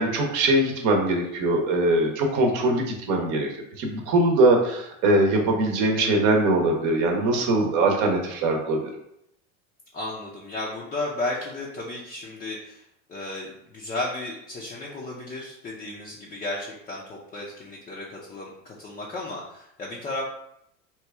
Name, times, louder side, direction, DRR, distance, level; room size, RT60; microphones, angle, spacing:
voice 1, 0.0-8.9, right 2 dB, 50° right, 2 dB, 0.9 m, -22 dB
voice 2, 9.9-20.2, left 2 dB, 20° left, -4 dB, 0.6 m, -34 dB
3.0 x 2.3 x 3.4 m, 0.78 s
hypercardioid pair, 100°, 38 cm